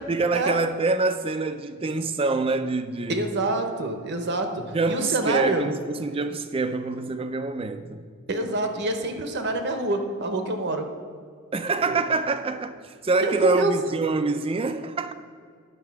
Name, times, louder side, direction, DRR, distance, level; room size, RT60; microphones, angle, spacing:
voice 1, 0.1-3.3 4.7-8.1 11.5-15.1, right 3 dB, 25° right, 0.4 m, -26 dB
voice 2, 3.1-5.7 8.3-10.9 11.8-12.0 13.2-13.7, right 2 dB, 50° right, 0.9 m, -26 dB
10.0 x 6.7 x 4.7 m
head